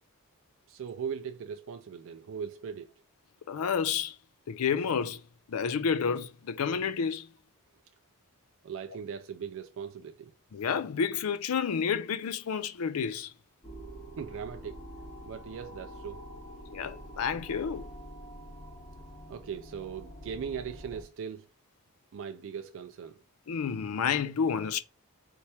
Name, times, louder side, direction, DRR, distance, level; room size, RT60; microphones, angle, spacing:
voice 1, 0.7-2.9 8.6-10.3 14.2-14.8 15.2-16.2 19.3-21.5 22.1-23.2, right 7 dB, 60° right, 0.3 m, -39 dB
voice 2, 3.5-4.1 4.5-5.2 5.5-7.3 10.5-13.3 16.7-17.9 23.5-24.8, left 6 dB, 75° left, 0.4 m, -30 dB
sound 1, 13.6-21.0, equal, 30° left, 1.4 m, -46 dB
4.3 x 2.9 x 3.3 m
head